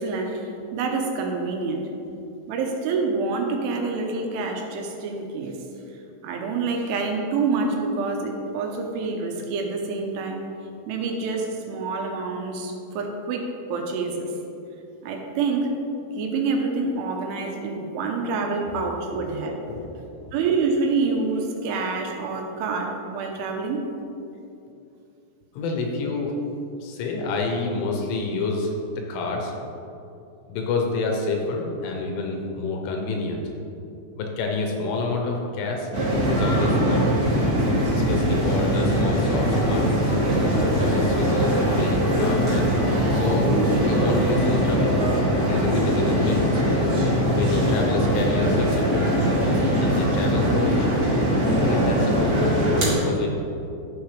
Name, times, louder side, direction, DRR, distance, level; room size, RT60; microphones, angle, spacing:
voice 1, 0.0-1.8 2.5-5.6 6.2-10.4 10.9-13.4 13.7-14.3 15.0-15.7 16.1-19.6 20.3-23.8, right 4 dB, 85° right, 2 dB, 3.4 m, -27 dB
voice 2, 25.5-26.3 26.8-29.5 30.5-33.5 34.2-35.9 36.3-37.0 38.0-40.1 40.8-42.8 43.1-43.5 43.8-45.0 45.5-46.6 47.3-49.1 49.8-50.9 51.5-53.3, left 3 dB, 80° left, 1 dB, 3.6 m, -28 dB
sound 1, 35.9-52.9, equal, 50° right, 1.0 m, -21 dB
12.0 x 8.0 x 3.4 m, 2.7 s
omnidirectional pair, 5.5 m